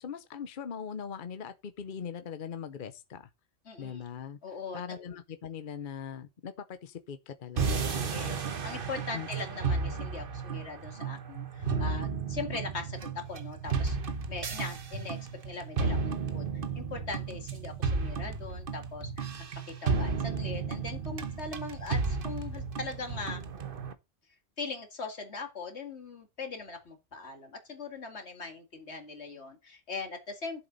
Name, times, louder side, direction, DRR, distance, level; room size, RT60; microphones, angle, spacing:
voice 1, 0.0-3.3 3.8-4.4 4.7-8.4 9.1-9.3, left 7 dB, 55° left, 0.9 m, -41 dB
voice 2, 3.7-4.0 4.4-4.8 7.9-15.2 15.4-19.3 19.7-23.5 24.6-30.7, left 4 dB, 85° left, 2.5 m, -40 dB
sound 1, 7.6-23.9, right 5 dB, 55° right, 1.2 m, -33 dB
11.0 x 7.5 x 4.0 m
omnidirectional pair, 1.1 m